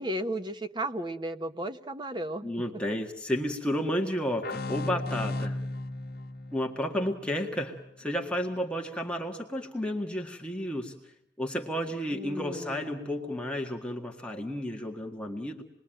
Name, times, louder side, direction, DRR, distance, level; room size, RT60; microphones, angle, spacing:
voice 1, 0.0-2.5 12.1-13.1, right 1 dB, 25° right, 8 dB, 1.1 m, -35 dB
voice 2, 2.4-5.6 6.5-15.6, equal, 5° left, 1 dB, 1.7 m, -32 dB
sound 1, 4.4-7.9, left 2 dB, 55° left, 1.6 m, -36 dB
28.0 x 21.5 x 8.9 m, 0.72 s
head